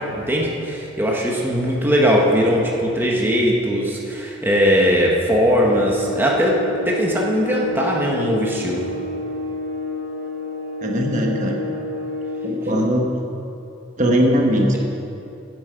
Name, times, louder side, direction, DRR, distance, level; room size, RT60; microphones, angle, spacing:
voice 1, 0.0-6.6 6.8-8.9, equal, 10° right, -3 dB, 1.2 m, -19 dB
sound 1, 5.5-12.6, left 2 dB, 80° left, 2.5 m, -29 dB
voice 2, 10.8-11.6 12.4-13.2 14.0-14.8, equal, 40° right, 0 dB, 1.2 m, -19 dB
15.0 x 7.9 x 5.2 m, 2.8 s
head